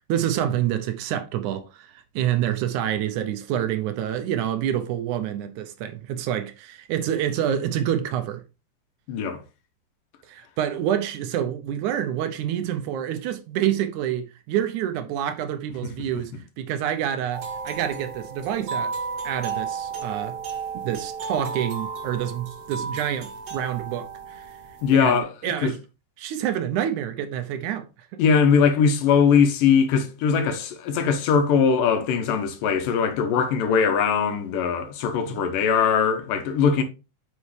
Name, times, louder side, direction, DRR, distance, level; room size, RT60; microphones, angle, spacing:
voice 1, 0.1-8.4 10.3-18.9 19.2-20.4 20.8-24.5 24.9-25.8 26.2-27.9 28.1-28.2 35.3-35.5, right 10 dB, 75° right, 2.1 m, -27 dB
voice 2, 9.1-9.4 24.8-25.7 28.2-36.8, left 6 dB, 90° left, 2.8 m, -21 dB
sound 1, 17.3-25.2, right 5 dB, 60° right, 1.9 m, -33 dB
8.3 x 5.4 x 3.3 m
omnidirectional pair, 3.8 m